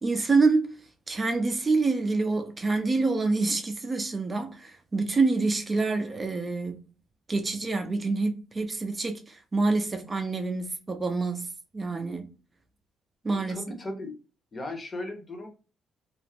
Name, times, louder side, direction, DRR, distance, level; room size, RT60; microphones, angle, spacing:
voice 1, 0.0-0.8 1.1-6.8 7.3-12.3 13.2-13.6, right 3 dB, 30° right, 0.4 m, -27 dB
voice 2, 13.5-14.1 14.5-15.5, left 2 dB, 30° left, 0.8 m, -36 dB
2.4 x 2.0 x 3.2 m
cardioid pair, 90°, 0 cm